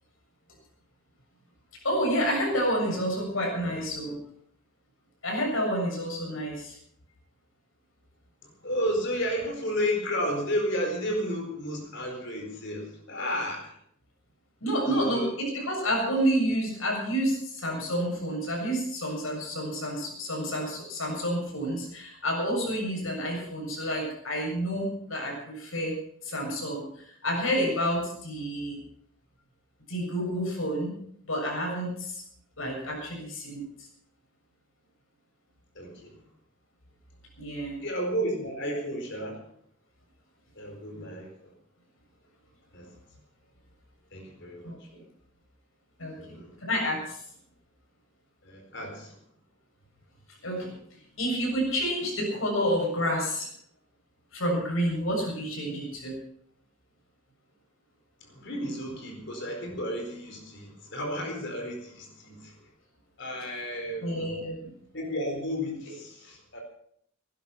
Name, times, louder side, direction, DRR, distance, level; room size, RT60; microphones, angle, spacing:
voice 1, 1.8-4.2 5.2-6.8 14.6-26.0 26.2-28.8 29.9-30.9 31.3-32.2 32.6-33.6 37.4-37.8 41.0-41.1 44.6-44.8 46.0-47.2 50.4-50.7 51.2-53.5 54.3-56.2 64.0-64.7, equal, 70° left, 0 dB, 7.1 m, -29 dB
voice 2, 8.4-13.7 14.9-15.3 35.7-36.1 37.8-39.4 40.6-41.5 42.7-42.9 44.1-44.9 46.2-46.5 48.4-49.2 58.2-62.6 63.2-64.3 64.9-66.6, equal, 55° left, 2 dB, 4.5 m, -32 dB
18.0 x 11.5 x 5.9 m, 0.66 s
head